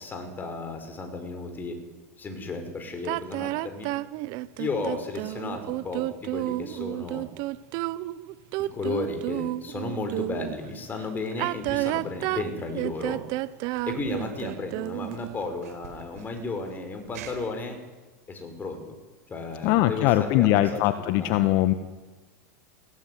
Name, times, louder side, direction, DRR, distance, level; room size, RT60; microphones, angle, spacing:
voice 1, 0.0-1.8 2.2-3.9 4.6-7.2 8.6-13.2 13.9-17.8 18.3-18.9 19.3-21.4, left 3 dB, 20° left, 6 dB, 5.5 m, -34 dB
sound 1, 3.0-10.6 11.3-15.3, right 18 dB, 55° right, 1.0 m, -31 dB
sound 2, 12.7-17.7, right 9 dB, 75° right, 5.1 m, -50 dB
voice 2, 19.6-21.7, left 14 dB, 55° left, 10 dB, 1.4 m, -21 dB
21.5 x 17.0 x 9.6 m, 1.3 s
hypercardioid pair, 115°, 8 cm